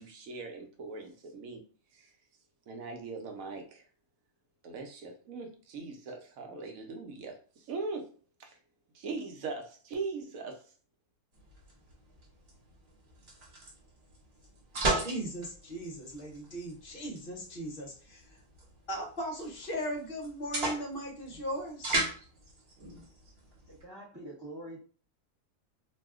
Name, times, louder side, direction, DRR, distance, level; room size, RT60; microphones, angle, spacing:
voice 1, 0.0-1.6 1.9-2.1 2.7-3.8 4.6-8.1 8.4-8.6 8.9-10.6, right 4 dB, 65° right, 3 dB, 1.0 m, -40 dB
sound 1, 11.3-23.8, right 2 dB, 45° right, 1.1 m, -38 dB
voice 2, 14.9-18.2 18.9-22.0, equal, 45° left, 1 dB, 0.7 m, -38 dB
voice 3, 23.7-24.8, right 1 dB, 25° right, -7 dB, 0.4 m, -45 dB
2.7 x 2.2 x 3.5 m, 0.41 s
omnidirectional pair, 1.7 m